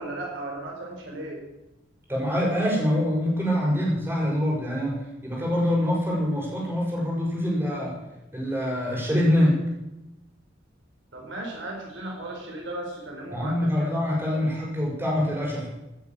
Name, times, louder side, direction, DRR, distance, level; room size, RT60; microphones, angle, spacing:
voice 1, 0.0-1.4 11.1-14.5, right 1 dB, 70° right, 0 dB, 4.5 m, -36 dB
voice 2, 2.1-8.0 8.3-9.6 13.3-15.7, left 1 dB, 10° right, -3 dB, 6.4 m, -25 dB
18.0 x 9.4 x 7.5 m, 0.94 s
head